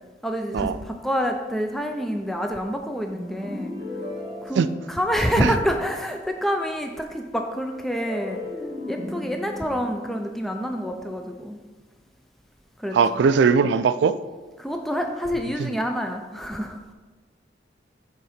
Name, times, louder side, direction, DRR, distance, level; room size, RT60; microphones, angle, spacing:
voice 1, 0.2-3.7 4.4-8.4 8.9-11.6 12.8-13.0 14.6-16.9, equal, ahead, 3 dB, 0.3 m, -27 dB
sound 1, 3.1-5.5 7.9-11.2, left 1 dB, 25° right, 1.2 m, -36 dB
voice 2, 12.9-14.2 15.6-15.8, right 5 dB, 75° right, 14 dB, 0.3 m, -20 dB
6.9 x 3.7 x 5.0 m, 1.3 s
head